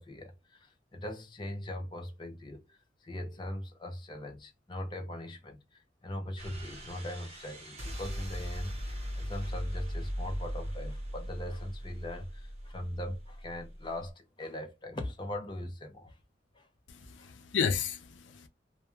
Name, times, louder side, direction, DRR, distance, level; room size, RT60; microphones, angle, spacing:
voice 1, 0.0-16.2 16.5-16.7 17.2-17.3, left 1 dB, 25° left, 0.5 m, -40 dB
Breaking the Atmophere, 6.4-14.1, equal, 35° right, 0.9 m, -39 dB
voice 2, 16.9-18.5, left 6 dB, 90° left, 0.5 m, -33 dB
2.2 x 2.2 x 3.0 m
head